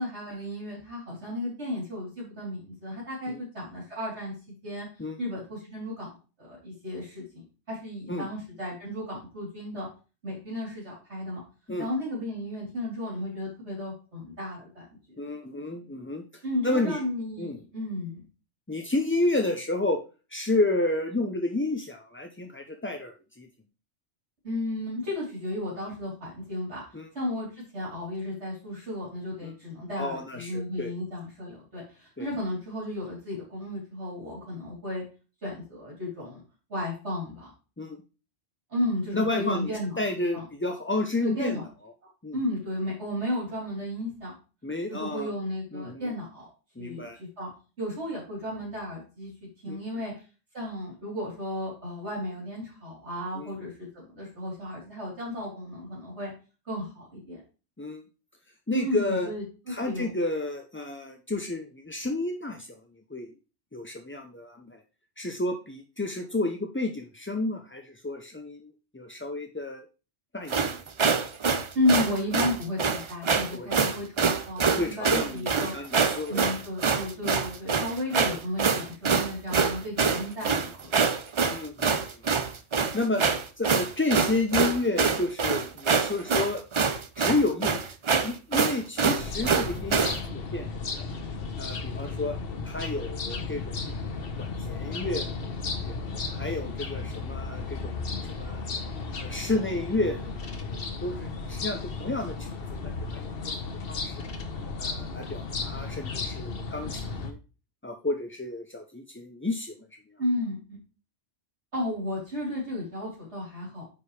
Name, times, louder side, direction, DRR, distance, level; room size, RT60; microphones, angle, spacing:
voice 1, 0.0-4.3 4.6-4.9 5.2-6.1 6.4-9.9 10.2-11.4 11.8-14.9 16.4-18.2 24.4-26.8 27.1-35.0 35.4-36.4 36.7-37.5 38.7-40.0 40.3-40.4 41.2-41.6 42.3-44.3 44.9-46.4 46.8-47.5 47.8-49.3 49.6-50.1 50.5-56.3 56.7-57.4 58.7-59.4 59.8-60.1 71.7-75.7 76.3-81.1 110.2-110.8 111.7-113.8, left 1 dB, 70° right, -5 dB, 4.1 m, -33 dB
voice 2, 15.2-16.2 16.6-17.0 17.4-17.6 18.7-20.0 20.3-23.5 26.9-27.1 29.4-29.5 30.0-30.9 32.2-32.3 37.8-38.0 39.1-41.6 42.2-42.4 44.6-45.3 45.7-46.1 46.8-47.2 49.7-49.8 53.4-53.5 57.8-58.0 58.7-59.3 59.7-62.8 63.1-63.3 63.7-64.8 65.2-69.9 70.3-70.7 73.5-73.8 74.7-76.5 80.4-80.5 81.5-82.0 82.9-83.2 83.6-86.6 87.2-87.8 88.2-91.1 91.6-92.4 92.6-93.8 94.4-95.5 95.8-96.0 96.3-98.0 98.3-98.7 99.2-102.5 102.8-104.2 104.8-107.4 107.8-109.8, left 2 dB, 15° left, 3 dB, 0.4 m, -31 dB
sound 1, 70.5-90.2, right 5 dB, 40° right, 0.4 m, -25 dB
sound 2, 89.2-107.3, left 4 dB, 55° left, 1.2 m, -34 dB
9.1 x 5.2 x 3.3 m, 0.33 s
omnidirectional pair, 1.2 m